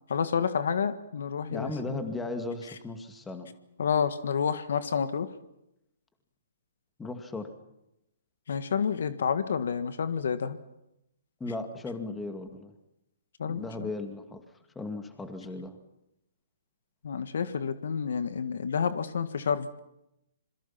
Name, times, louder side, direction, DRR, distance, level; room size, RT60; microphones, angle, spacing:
voice 1, 0.1-2.0 3.8-5.3 8.5-10.6 13.4-13.9 17.0-19.9, left 6 dB, 70° left, 12 dB, 1.6 m, -29 dB
voice 2, 1.5-3.5 7.0-7.5 11.4-12.8 13.4-14.4 14.8-15.8, left 2 dB, 10° left, 7 dB, 2.2 m, -36 dB
27.0 x 22.5 x 5.9 m, 0.85 s
hypercardioid pair, 145°, 0 cm